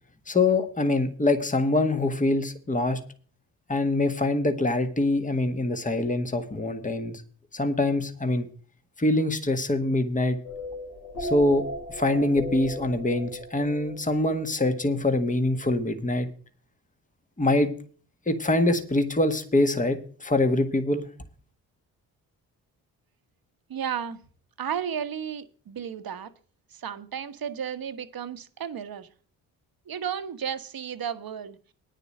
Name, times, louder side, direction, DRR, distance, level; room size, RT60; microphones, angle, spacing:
voice 1, 0.3-3.0 3.7-7.2 7.5-8.5 9.0-10.4 11.2-11.6 11.9-16.3 17.4-17.7 18.3-21.1, left 2 dB, 20° left, 7 dB, 1.7 m, -24 dB
sound 1, 10.4-15.3, left 1 dB, 75° left, 3.9 m, -37 dB
voice 2, 23.7-24.2 24.6-26.3 26.7-29.1 29.9-31.6, right 8 dB, 55° right, 10 dB, 1.3 m, -33 dB
9.7 x 6.7 x 7.8 m, 0.41 s
hypercardioid pair, 45°, 43 cm